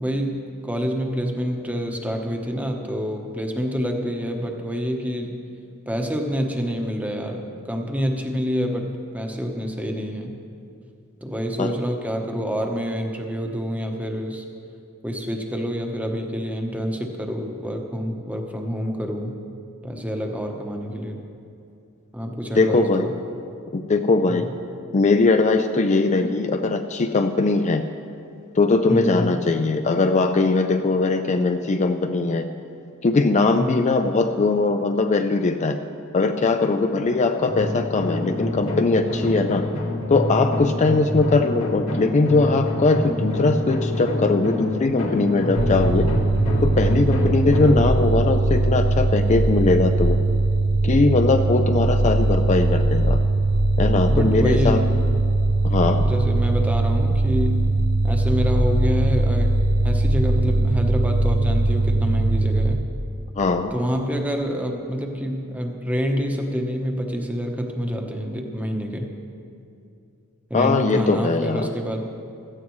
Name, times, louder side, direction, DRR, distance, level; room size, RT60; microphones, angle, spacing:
voice 1, 0.0-5.4 5.9-10.4 11.2-14.4 15.0-19.4 19.8-21.2 22.1-23.2 24.3-24.5 28.9-29.4 33.6-33.8 54.1-55.0 56.0-57.7 58.0-59.6 59.8-62.9 63.7-69.1 70.5-72.1, equal, 5° right, 3 dB, 1.0 m, -27 dB
voice 2, 22.6-23.1 23.7-24.5 24.9-27.8 28.5-32.5 33.0-35.8 36.1-39.6 40.1-46.1 46.6-50.2 50.8-53.2 53.8-54.8 55.6-56.0 63.3-63.7 70.5-71.7, left 3 dB, 35° left, 7 dB, 0.4 m, -20 dB
sound 1, 37.4-47.8, left 1 dB, 85° left, 2.0 m, -27 dB
sound 2, 45.6-62.7, right 2 dB, 85° right, 0.9 m, -20 dB
16.5 x 13.5 x 3.1 m, 2.5 s
head